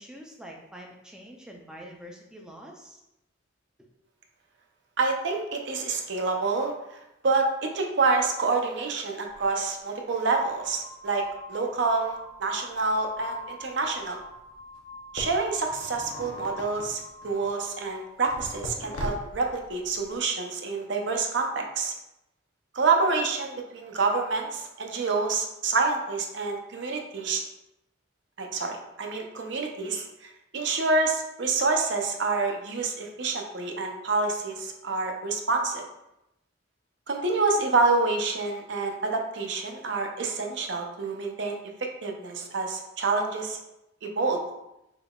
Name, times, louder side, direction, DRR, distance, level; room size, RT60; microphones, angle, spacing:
voice 1, 0.0-3.0, equal, 5° right, 0 dB, 0.4 m, -45 dB
voice 2, 5.0-6.7 7.2-11.2 11.5-14.2 15.1-21.9 22.7-27.4 28.4-30.1 30.5-35.8 37.1-41.6 42.0-43.6 44.0-44.4, right 3 dB, 60° right, 3 dB, 0.5 m, -27 dB
sound 1, 9.3-9.5 10.3-18.0, left 1 dB, 35° left, 0.9 m, -45 dB
sound 2, 14.3-14.4 15.2-17.5 18.3-20.2, left 1 dB, 70° left, 0.6 m, -39 dB
3.9 x 3.6 x 2.3 m, 0.89 s
head